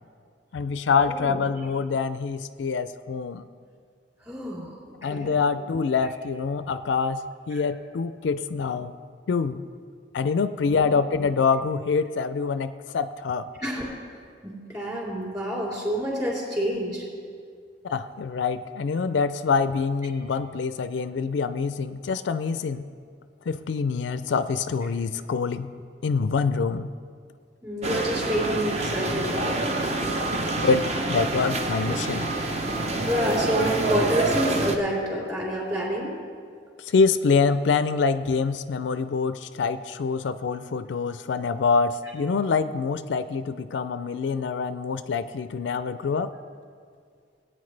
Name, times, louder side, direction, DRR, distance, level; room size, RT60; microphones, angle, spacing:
voice 1, 0.5-3.5 5.0-7.2 7.5-8.9 9.3-9.6 10.1-13.5 17.9-22.9 23.5-25.7 26.0-26.9 30.6-32.3 36.8-46.3, left 5 dB, 70° left, 12 dB, 0.4 m, -25 dB
voice 2, 1.1-1.4 4.2-4.8 5.1-5.3 7.5-7.6 10.6-10.9 13.6-13.9 14.4-17.0 27.6-30.0 33.0-36.1, equal, 20° right, -5 dB, 3.5 m, -28 dB
sound 1, 27.8-34.8, right 2 dB, 35° right, 0.8 m, -27 dB
19.0 x 9.0 x 3.3 m, 2.1 s
head